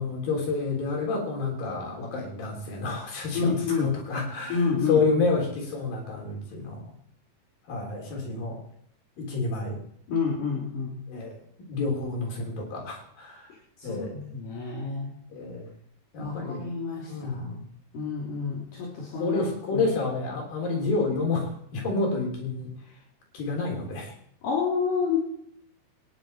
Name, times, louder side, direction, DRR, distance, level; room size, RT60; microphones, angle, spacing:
voice 1, 0.0-4.6 4.9-6.8 7.7-8.6 9.2-9.8 11.1-11.3 11.7-13.5 13.8-14.1 15.3-15.7 16.1-16.7 17.1-17.6 19.1-22.7 23.3-24.1, left 3 dB, 85° left, 0 dB, 5.5 m, -29 dB
voice 2, 3.3-4.0 4.5-5.2 10.1-11.0 13.8-15.2 16.2-17.5 17.9-19.9 24.4-25.2, left 5 dB, 65° left, -5 dB, 4.8 m, -29 dB
24.0 x 10.5 x 4.5 m, 0.72 s
omnidirectional pair, 4.0 m